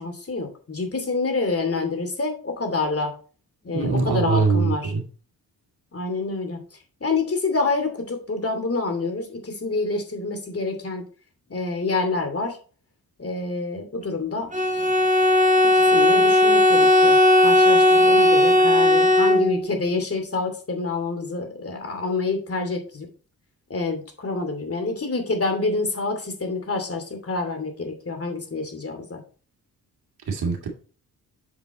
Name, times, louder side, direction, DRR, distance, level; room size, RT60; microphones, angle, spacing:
voice 1, 0.0-3.1 3.6-4.9 5.9-6.6 7.0-11.0 11.5-12.6 13.2-14.5 15.7-23.1 23.7-29.2, left 3 dB, 35° left, 5 dB, 2.7 m, -27 dB
voice 2, 3.7-5.0 30.3-30.7, right 4 dB, 65° right, 2 dB, 2.5 m, -22 dB
Bowed string instrument, 14.5-19.8, left 1 dB, 20° right, 1.9 m, -16 dB
7.5 x 5.3 x 4.2 m, 0.40 s
supercardioid pair, 50°, 40 cm